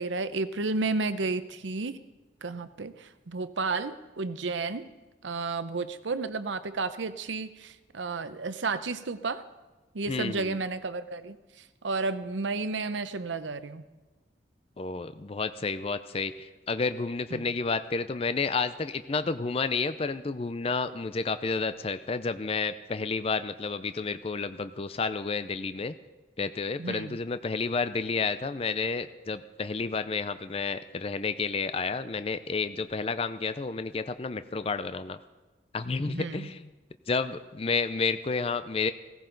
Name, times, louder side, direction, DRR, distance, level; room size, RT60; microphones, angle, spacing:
voice 1, 0.0-2.0 2.4-4.9 5.2-9.4 9.9-11.4 11.8-13.8 17.3-17.5 26.8-27.2 36.1-36.5, right 3 dB, 85° right, 12 dB, 0.7 m, -32 dB
voice 2, 10.1-10.6 14.8-25.9 26.4-35.2 35.7-36.7 37.1-38.9, left 4 dB, 30° left, 11 dB, 0.5 m, -30 dB
17.0 x 15.0 x 3.9 m, 1.2 s
head